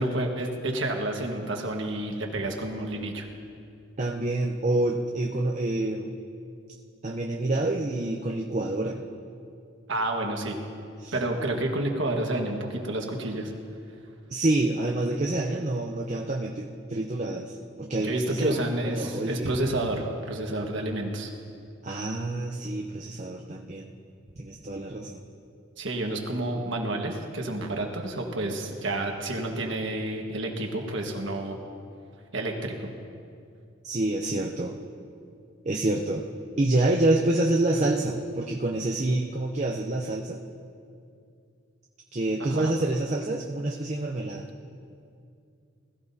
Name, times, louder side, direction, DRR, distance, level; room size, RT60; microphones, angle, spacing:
voice 1, 0.0-3.3 9.9-10.6 11.1-13.5 18.0-21.3 25.8-31.6 32.3-32.9 42.4-42.7, right 1 dB, 65° right, 2 dB, 1.5 m, -29 dB
voice 2, 4.0-6.2 7.0-9.0 11.0-11.2 14.3-19.6 21.8-23.9 24.4-25.2 33.8-34.8 35.6-36.2 36.6-40.4 42.1-44.5, right 2 dB, 35° right, 2 dB, 0.6 m, -27 dB
20.5 x 14.0 x 2.8 m, 2.4 s
head